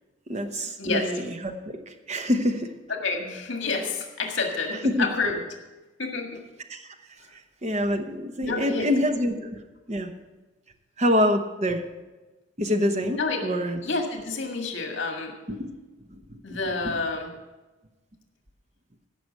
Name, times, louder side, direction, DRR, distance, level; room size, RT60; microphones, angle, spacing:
voice 1, 0.3-2.7 4.7-5.1 6.7-6.9 7.3-9.6 9.9-10.1 11.0-11.8 12.6-13.8 15.5-15.7 16.3-16.6 16.8-16.9, left 1 dB, 35° right, 6 dB, 1.0 m, -26 dB
voice 2, 2.9-5.3 6.0-6.3 8.4-8.9 13.2-13.4 13.8-15.3 16.4-17.3, left 3 dB, 70° left, 2 dB, 1.8 m, -28 dB
15.5 x 6.0 x 6.6 m, 1.2 s
head